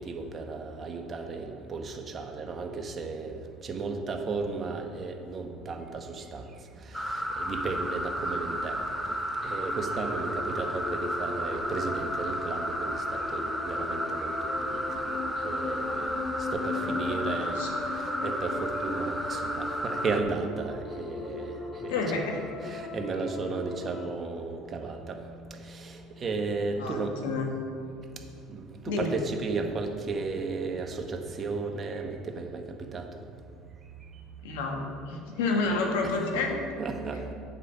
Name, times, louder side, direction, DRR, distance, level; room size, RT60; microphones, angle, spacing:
voice 1, 0.0-6.5 6.9-8.8 9.0-9.1 9.4-15.2 15.4-17.6 17.9-21.5 21.8-21.9 22.6-25.2 25.6-27.1 28.5-32.6 32.9-33.1 36.8-37.3, right 4 dB, 35° right, 4 dB, 1.0 m, -34 dB
sound 1, 6.9-20.2, equal, ahead, 0.8 m, -33 dB
sound 2, 9.5-24.1, left 3 dB, 30° left, 1.0 m, -38 dB
voice 2, 16.8-17.7 21.8-22.4 26.8-27.5 28.9-29.1 34.4-36.6, left 3 dB, 85° left, 2 dB, 1.3 m, -30 dB
8.1 x 4.9 x 6.9 m, 2.4 s
supercardioid pair, 90°, 0 cm